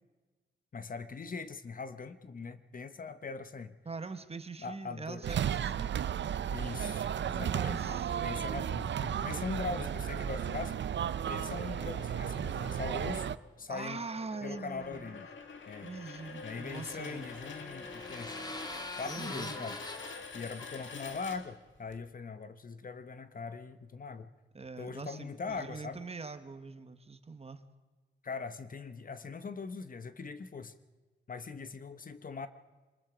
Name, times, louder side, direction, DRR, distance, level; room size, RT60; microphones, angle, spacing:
voice 1, 0.7-3.8 4.6-5.2 6.5-10.8 11.3-14.0 14.4-15.2 15.7-15.9 16.4-18.4 19.0-19.8 20.3-24.3 24.8-26.0 28.2-30.7 31.3-32.5, left 4 dB, 45° left, 11 dB, 0.9 m, -41 dB
voice 2, 3.8-5.9 7.3-8.7 12.0-12.3 13.7-15.3 15.8-17.3 19.0-19.7 24.5-27.6, right 4 dB, 30° right, 10 dB, 1.2 m, -43 dB
sound 1, 5.2-13.4, right 9 dB, 70° right, 0.5 m, -34 dB
sound 2, 11.4-21.9, left 4 dB, 85° left, 1.9 m, -47 dB
sound 3, 16.0-21.6, left 2 dB, 20° left, 1.5 m, -44 dB
25.0 x 20.5 x 5.1 m, 1.3 s
wide cardioid pair, 110°, 19 cm